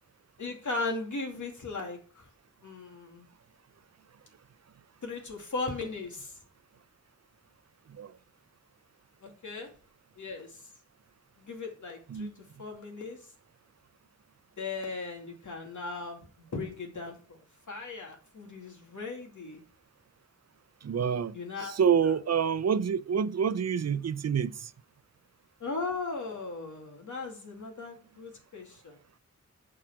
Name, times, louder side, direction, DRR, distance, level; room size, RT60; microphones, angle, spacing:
voice 1, 0.4-2.3 2.6-3.3 5.0-6.4 9.2-9.7 10.2-10.6 11.4-12.3 12.6-13.2 14.6-17.4 17.7-19.6 21.3-21.7 22.0-22.1 25.6-28.9, left 3 dB, 85° left, 2.6 m, -37 dB
voice 2, 20.8-24.7, right 7 dB, 60° right, 0.5 m, -27 dB
8.8 x 4.8 x 6.0 m
wide cardioid pair, 65°, 29 cm